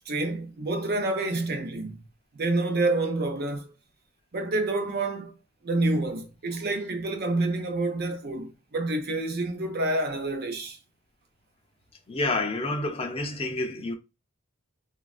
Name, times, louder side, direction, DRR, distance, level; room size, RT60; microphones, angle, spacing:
voice 1, 0.0-2.0 2.3-3.7 4.3-5.4 5.6-10.8, right 2 dB, 50° right, 0.6 m, -28 dB
voice 2, 12.1-13.9, left 2 dB, 25° left, 0.4 m, -29 dB
3.2 x 2.3 x 2.3 m
head